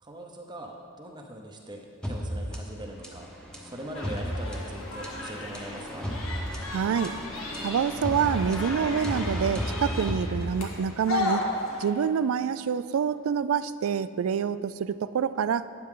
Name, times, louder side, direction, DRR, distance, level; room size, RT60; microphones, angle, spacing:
voice 1, 0.0-3.3 3.6-6.1, right 1 dB, 20° right, 1 dB, 0.7 m, -41 dB
sound 1, 2.0-11.0, equal, 5° left, 1.0 m, -34 dB
sound 2, 3.9-11.8, left 3 dB, 70° left, 1.5 m, -35 dB
voice 2, 6.7-7.1 7.6-11.5 11.8-15.6, right 7 dB, 70° right, 15 dB, 0.3 m, -27 dB
12.0 x 9.4 x 3.8 m, 2.7 s
head